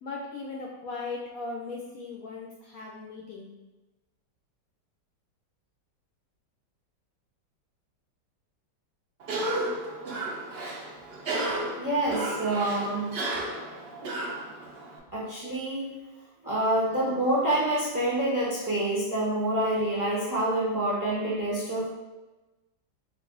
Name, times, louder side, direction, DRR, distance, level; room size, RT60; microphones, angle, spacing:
voice 1, 0.0-3.5, left 3 dB, 70° left, -1 dB, 0.8 m, -38 dB
Cough, 9.2-15.0, right 2 dB, 75° right, 0.5 m, -33 dB
voice 2, 11.8-13.1 15.1-15.9 16.4-21.9, right 1 dB, 20° right, -6 dB, 0.5 m, -27 dB
3.9 x 2.5 x 3.8 m, 1.1 s
omnidirectional pair, 1.9 m